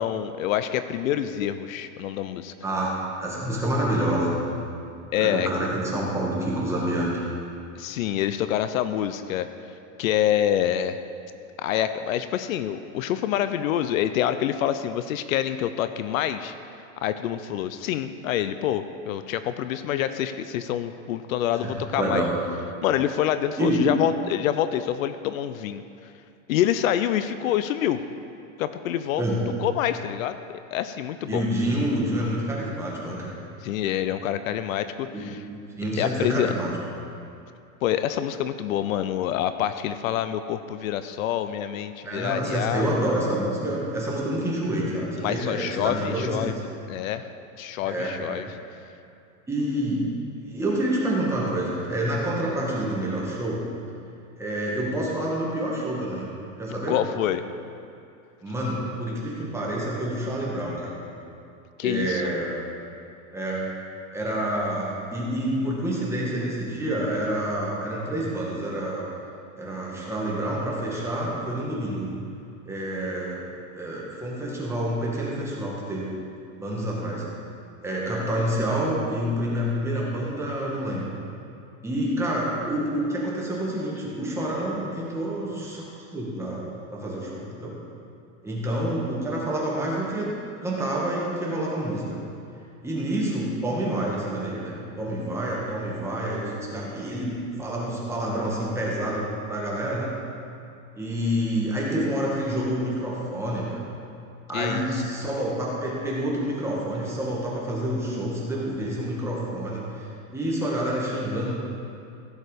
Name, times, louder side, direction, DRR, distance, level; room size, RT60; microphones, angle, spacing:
voice 1, 0.0-2.5 5.1-5.5 7.8-9.5 10.0-11.0 11.6-16.5 17.0-22.2 22.8-25.8 26.5-28.0 28.6-29.2 29.6-31.4 33.6-35.4 35.9-36.5 37.8-42.8 45.2-46.5 46.9-47.3 47.6-48.4 56.9-57.4 61.8-62.2 104.5-104.9, left 11 dB, 75° left, 11 dB, 0.6 m, -26 dB
voice 2, 2.6-2.9 3.2-4.4 5.1-7.1 21.6-22.3 23.6-23.8 29.2-29.4 31.3-33.4 35.1-36.7 42.0-46.5 47.8-48.5 49.5-50.1 50.4-53.6 54.4-56.9 58.4-61.0 61.8-62.6 63.3-63.6 64.1-69.0 69.6-72.1 72.6-73.5 73.7-76.1 76.5-77.2 77.8-81.1 81.8-87.7 88.4-90.3 90.6-92.2 92.8-97.3 97.6-100.1 101.0-103.8 104.5-110.1 110.3-111.5, right 1 dB, 5° right, -5 dB, 2.0 m, -28 dB
15.5 x 6.5 x 5.1 m, 2.5 s
supercardioid pair, 150°, 42 cm